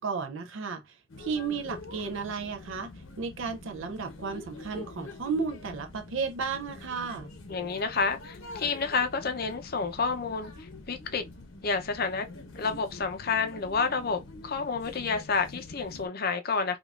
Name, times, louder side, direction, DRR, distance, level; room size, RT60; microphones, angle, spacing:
voice 1, 0.0-2.9 3.2-7.3, right 5 dB, 60° right, 0.5 m, -33 dB
sound 1, 1.1-16.1, left 2 dB, 65° left, 0.9 m, -46 dB
voice 2, 7.5-10.5 10.9-11.2 11.6-12.3 12.6-16.8, left 4 dB, 45° left, 0.6 m, -29 dB
5.0 x 2.4 x 2.4 m
head